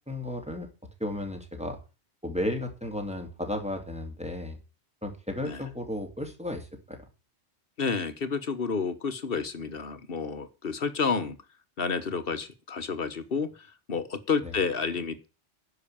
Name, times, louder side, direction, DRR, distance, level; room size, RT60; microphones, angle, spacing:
voice 1, 0.1-0.7 1.0-1.8 2.2-4.6 5.0-7.0 14.4-14.5, left 1 dB, 5° right, 3 dB, 2.9 m, -34 dB
voice 2, 7.8-11.4 11.8-15.3, left 5 dB, 55° left, 12 dB, 1.5 m, -30 dB
10.5 x 6.4 x 8.6 m, 0.32 s
omnidirectional pair, 1.1 m